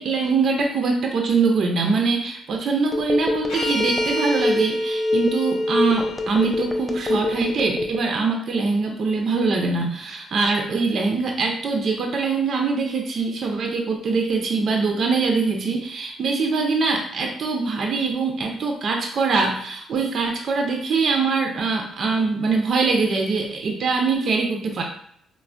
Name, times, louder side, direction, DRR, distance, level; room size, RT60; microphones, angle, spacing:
voice 1, 0.0-24.8, right 4 dB, 55° right, 2 dB, 0.4 m, -23 dB
Telephone, 2.9-8.1, left 2 dB, 5° left, 0.4 m, -24 dB
sound 1, 3.5-7.7, equal, 90° left, 0.7 m, -33 dB
3.2 x 2.0 x 2.5 m, 0.67 s
cardioid pair, 90°, 0 cm